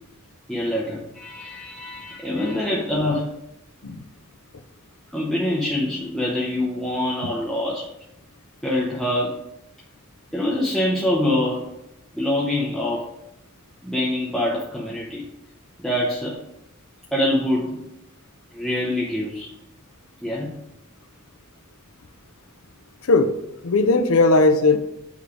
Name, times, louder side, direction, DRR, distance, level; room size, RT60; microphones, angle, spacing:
voice 1, 0.5-3.3 5.1-7.8 8.6-9.4 10.3-11.7 12.1-13.1 13.8-15.2 15.8-16.4 17.1-17.9 18.5-19.5 20.2-20.5, left 1 dB, 5° left, -6 dB, 0.8 m, -25 dB
voice 2, 23.0-23.3 23.6-24.8, left 3 dB, 90° left, 8 dB, 0.6 m, -17 dB
8.4 x 3.3 x 4.9 m, 0.84 s
head